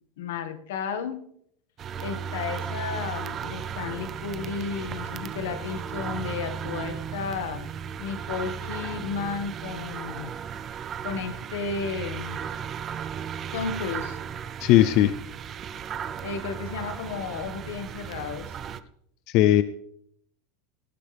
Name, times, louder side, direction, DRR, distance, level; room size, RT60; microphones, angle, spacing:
voice 1, 0.2-1.2 2.0-7.7 8.0-10.4 11.0-12.4 13.5-14.2 16.2-18.6, left 6 dB, 85° left, 8 dB, 1.8 m, -33 dB
sound 1, 1.8-18.8, right 7 dB, 25° right, 0.6 m, -35 dB
voice 2, 14.6-15.1 19.3-19.6, left 13 dB, 45° left, 13 dB, 0.6 m, -18 dB
18.5 x 11.5 x 3.5 m, 0.69 s
supercardioid pair, 160°, 0 cm